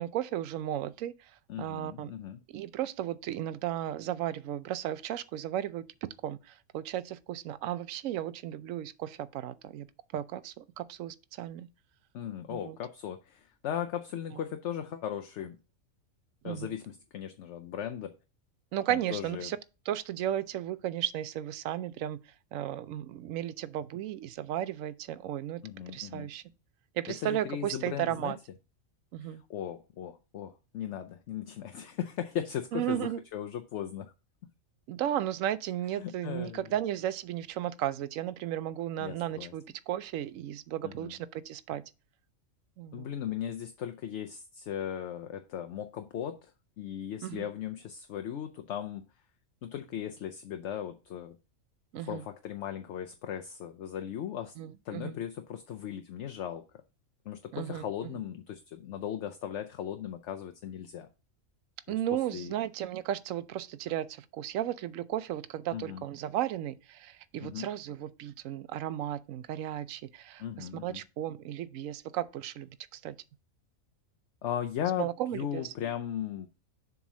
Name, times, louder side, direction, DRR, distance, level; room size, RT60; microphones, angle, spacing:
voice 1, 0.0-1.3 1.6-2.1 2.5-9.9 10.1-11.7 12.5-12.8 16.4-16.7 18.7-19.6 19.9-22.2 22.5-26.4 26.9-28.4 29.1-29.4 32.7-33.2 34.9-41.8 42.8-43.1 47.2-47.5 51.9-52.3 54.6-55.2 57.5-58.1 61.9-73.1 75.0-75.7, right 12 dB, 75° right, 1.0 m, -35 dB
voice 2, 1.5-2.4 12.1-15.6 16.4-18.1 18.9-19.5 25.6-26.3 27.2-28.3 29.2-34.1 36.0-36.6 39.0-39.5 40.8-41.1 42.9-46.5 46.8-49.1 49.6-51.4 52.0-54.5 54.8-56.8 57.3-61.1 61.9-62.0 62.3-62.5 65.7-66.0 67.4-67.7 70.4-71.0 74.4-76.5, left 9 dB, 65° left, 0.9 m, -37 dB
7.2 x 3.6 x 6.1 m
omnidirectional pair, 1.4 m